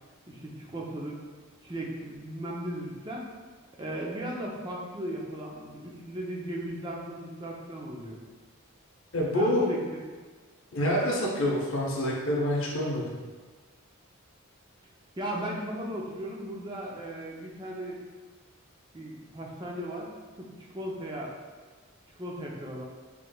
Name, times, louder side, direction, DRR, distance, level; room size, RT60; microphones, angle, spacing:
voice 1, 0.3-1.2 1.6-3.3 3.8-8.2 9.3-9.8 15.2-18.0 18.9-20.1 20.4-21.3 22.2-22.8, right 1 dB, 20° right, -3 dB, 0.5 m, -36 dB
voice 2, 9.1-9.7 10.7-13.2, left 1 dB, 65° left, -2 dB, 0.8 m, -27 dB
5.1 x 3.2 x 2.3 m, 1.4 s
head